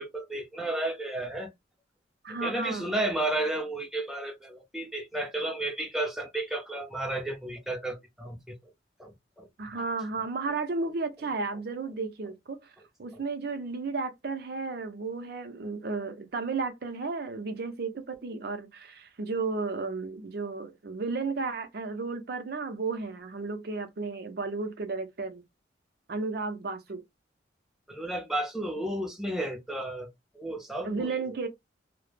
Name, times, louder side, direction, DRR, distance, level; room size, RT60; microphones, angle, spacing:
voice 1, 0.0-1.5 2.4-8.6 9.0-9.1 9.4-9.5 27.9-30.1 30.3-31.1, right 1 dB, ahead, 0.5 m, -32 dB
voice 2, 2.2-2.9 9.6-12.7 13.0-25.4 26.1-27.0 30.8-31.5, right 4 dB, 55° right, 0.5 m, -33 dB
2.1 x 2.0 x 3.2 m
head